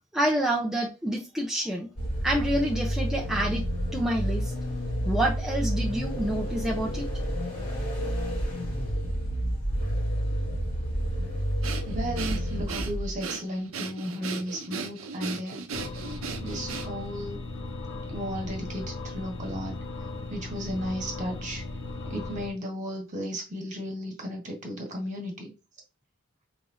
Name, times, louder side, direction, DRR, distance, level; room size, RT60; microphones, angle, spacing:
voice 1, 0.1-1.9 2.2-3.7 3.9-4.5 5.0-7.1, right 1 dB, 5° right, 0.6 m, -28 dB
sound 1, 2.0-13.2, equal, 50° left, 2.0 m, -30 dB
Breathing, 11.6-17.2, right 5 dB, 80° right, 0.7 m, -37 dB
voice 2, 11.9-15.6 16.4-17.4 18.1-19.8 20.3-21.6 22.1-25.5, equal, 40° right, 1.5 m, -34 dB
sound 2, 15.7-22.5, left 3 dB, 65° left, 0.8 m, -37 dB
5.1 x 3.1 x 2.6 m
head